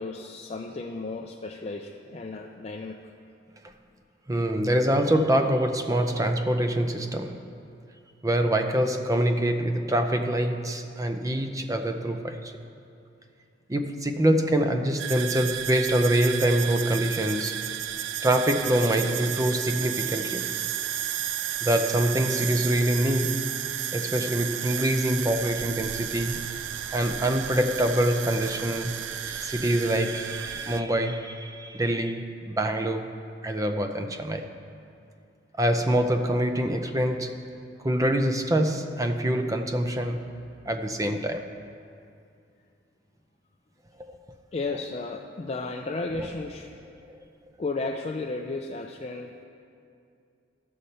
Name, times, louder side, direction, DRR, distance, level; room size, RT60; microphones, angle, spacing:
voice 1, 0.0-3.0 44.5-46.7 47.6-49.4, left 3 dB, 35° left, 2 dB, 0.4 m, -34 dB
voice 2, 4.3-7.5 8.2-12.5 13.7-17.6 18.2-20.5 21.6-23.6 23.9-26.5 26.9-33.1 33.4-34.5 35.6-37.5 37.8-40.4 40.6-41.5 44.0-44.2 46.2-46.3, right 1 dB, 20° right, 6 dB, 0.5 m, -25 dB
sound 1, 15.0-30.8, right 10 dB, 80° right, 0.4 m, -32 dB
14.5 x 6.6 x 4.2 m, 2.5 s
head